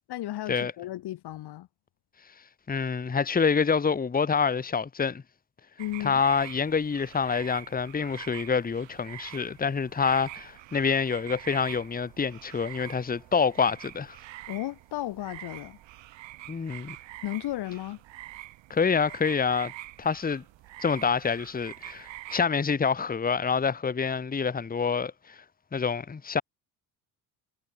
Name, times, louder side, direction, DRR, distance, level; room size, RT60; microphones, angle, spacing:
voice 1, 0.1-1.7 5.8-6.2 14.5-15.8 17.2-18.0, left 14 dB, 55° left, 1.1 m, -34 dB
voice 2, 2.7-5.2 6.0-14.2 16.5-17.0 18.7-19.7 20.0-20.4 20.8-25.4 25.7-26.4, left 5 dB, 20° left, 1.1 m, -27 dB
sound 1, 5.8-22.4, right 16 dB, 70° right, 2.8 m, -45 dB
supercardioid pair, 70°, 47 cm